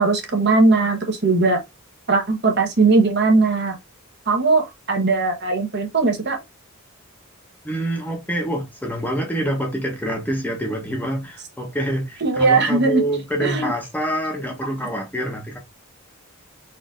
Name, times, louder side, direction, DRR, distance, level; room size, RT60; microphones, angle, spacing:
voice 1, 0.0-1.6 2.1-3.7 4.3-6.4 12.2-13.0 13.4-13.7, right 3 dB, 50° right, 1.2 m, -19 dB
voice 2, 7.6-15.6, right 1 dB, 10° left, 0.9 m, -26 dB
4.1 x 2.7 x 3.8 m
head